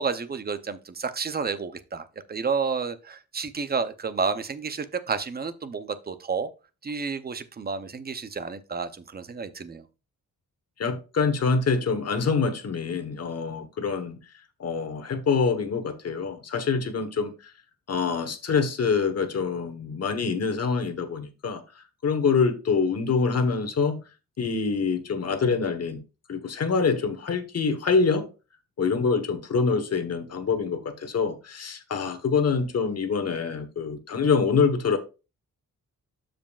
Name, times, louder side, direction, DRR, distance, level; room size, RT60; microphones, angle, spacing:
voice 1, 0.0-6.5 6.8-9.8, right 5 dB, 30° right, 0.6 m, -30 dB
voice 2, 10.8-14.2 14.6-17.5 17.9-24.0 24.4-26.0 26.3-28.3 28.8-35.0, left 5 dB, 50° left, 1.2 m, -25 dB
12.5 x 5.2 x 2.4 m
wide cardioid pair, 170°, 33 cm